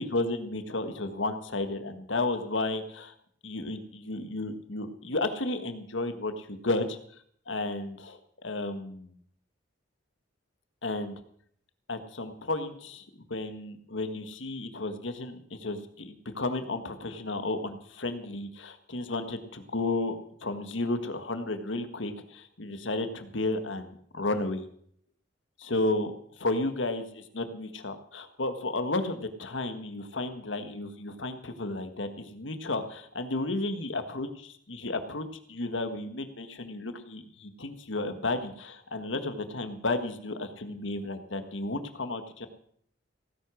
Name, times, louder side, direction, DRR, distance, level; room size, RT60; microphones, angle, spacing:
voice 1, 0.0-3.1 3.4-7.0 7.5-9.2 10.8-11.1 11.9-13.0 13.3-20.2 20.4-24.6 25.6-26.1 26.4-42.5, left 2 dB, 85° left, 9 dB, 1.5 m, -33 dB
16.5 x 9.9 x 6.2 m, 0.65 s
head